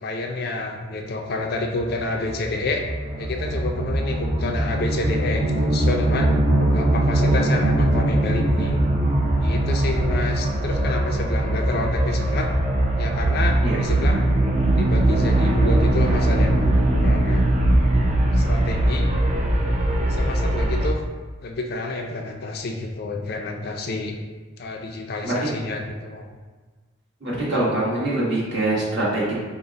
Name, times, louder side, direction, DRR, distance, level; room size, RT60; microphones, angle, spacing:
voice 1, 0.0-2.8 3.2-6.3 6.7-8.9 9.4-12.5 13.0-14.2 14.7-16.6 17.0-17.5 18.3-19.1 20.1-21.0 21.4-24.2 24.6-26.4, left 2 dB, 50° left, 2 dB, 0.4 m, -29 dB
sound 1, 1.6-20.9, right 1 dB, 35° right, 0.5 m, -21 dB
voice 2, 27.2-29.3, right 2 dB, 55° right, -8 dB, 1.5 m, -23 dB
4.8 x 2.1 x 4.0 m, 1.4 s
head